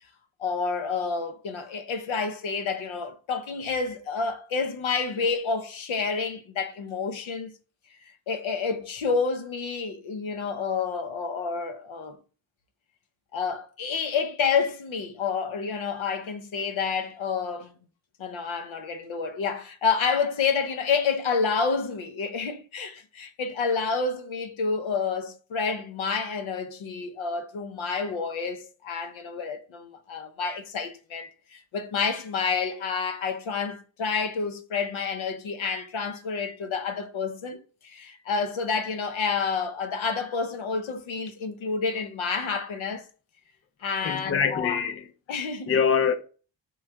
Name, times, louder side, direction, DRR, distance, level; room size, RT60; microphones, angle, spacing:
voice 1, 0.4-7.5 8.0-12.2 13.3-17.7 18.2-43.1 43.8-44.9 45.3-45.8, left 5 dB, 80° left, 0.6 m, -29 dB
voice 2, 44.0-45.0 45.7-46.1, left 6 dB, 30° left, 0.4 m, -24 dB
3.1 x 2.4 x 4.3 m
wide cardioid pair, 115°, 46 cm